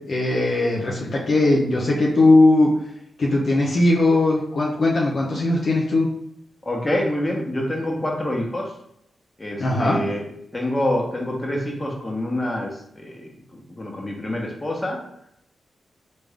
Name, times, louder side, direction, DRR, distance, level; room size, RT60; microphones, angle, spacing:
voice 1, 0.1-2.7 3.2-6.1 9.6-10.0, left 2 dB, 65° left, -3 dB, 0.6 m, -19 dB
voice 2, 6.6-8.7 9.4-10.2 10.5-12.7 13.0-13.3 13.7-15.0, left 1 dB, 25° left, -1 dB, 1.2 m, -26 dB
3.5 x 2.6 x 3.4 m, 0.75 s
supercardioid pair, 45°, 0 cm